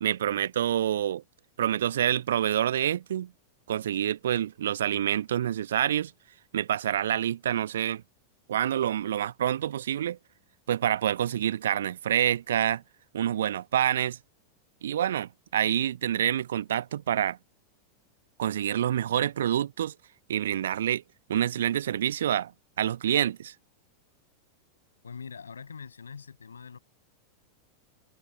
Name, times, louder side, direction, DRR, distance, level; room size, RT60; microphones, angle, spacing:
voice 1, 0.0-1.2 1.6-3.3 3.7-6.1 6.5-8.0 8.5-10.2 10.7-12.8 13.1-14.2 14.8-17.4 18.4-19.9 20.3-21.0 21.3-22.5 22.8-23.5, right 10 dB, 60° right, 1.1 m, -27 dB
voice 2, 25.0-26.8, left 6 dB, 70° left, 6.9 m, -43 dB
figure-of-eight pair, 90°, 0 cm